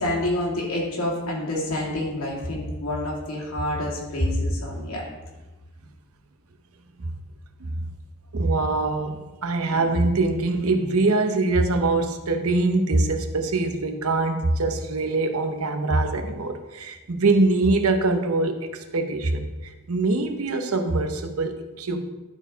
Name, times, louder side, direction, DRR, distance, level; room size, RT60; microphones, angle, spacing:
voice 1, 0.0-5.0 9.7-9.9, left 1 dB, 80° left, -3 dB, 2.3 m, -27 dB
voice 2, 8.3-22.1, right 2 dB, 80° right, 6 dB, 0.8 m, -23 dB
11.5 x 4.3 x 4.0 m, 1.2 s
head